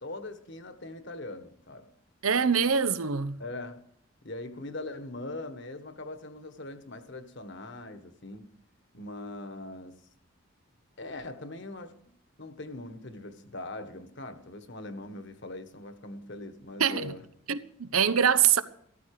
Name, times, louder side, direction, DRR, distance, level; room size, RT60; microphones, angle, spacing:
voice 1, 0.0-1.9 3.4-3.8 4.2-8.5 8.9-10.0 11.0-11.9 12.4-17.3, left 2 dB, 55° left, 1.5 m, -41 dB
voice 2, 2.2-3.4 16.8-17.1 17.5-18.6, right 7 dB, 80° right, 0.9 m, -24 dB
15.0 x 14.0 x 5.0 m
head